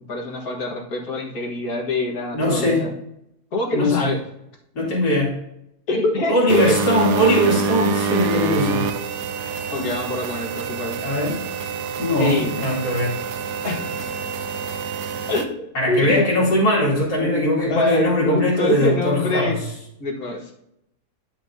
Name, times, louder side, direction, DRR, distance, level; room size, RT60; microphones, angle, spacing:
voice 1, 0.1-3.0 3.5-4.2 5.9-6.8 9.7-11.0 12.2-12.5 13.6-14.1 15.3-16.3 17.2-19.6 20.0-20.5, left 2 dB, 65° left, 0 dB, 2.1 m, -25 dB
voice 2, 2.3-2.9 3.7-4.1 4.7-5.3 6.3-8.9 9.8-9.9 11.0-11.4 12.0-13.2 15.7-19.6, left 1 dB, 85° left, -7 dB, 2.9 m, -20 dB
sound 1, 6.5-15.5, right 5 dB, 85° right, 1.3 m, -26 dB
11.5 x 5.7 x 2.7 m, 0.81 s
omnidirectional pair, 1.7 m